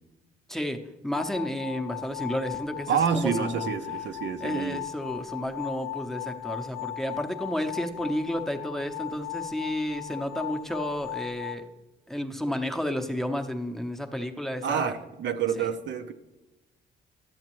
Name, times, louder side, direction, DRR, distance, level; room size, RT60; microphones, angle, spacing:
voice 1, 1.0-3.7 4.4-11.7 12.1-14.9 15.6-15.7, equal, ahead, 5 dB, 0.7 m, -31 dB
sound 1, 1.1-11.6, left 13 dB, 55° left, 0.5 m, -37 dB
voice 2, 2.9-4.8 14.6-16.1, right 7 dB, 65° right, 8 dB, 0.6 m, -28 dB
12.0 x 7.2 x 3.0 m, 1.0 s
cardioid pair, 90°, 20 cm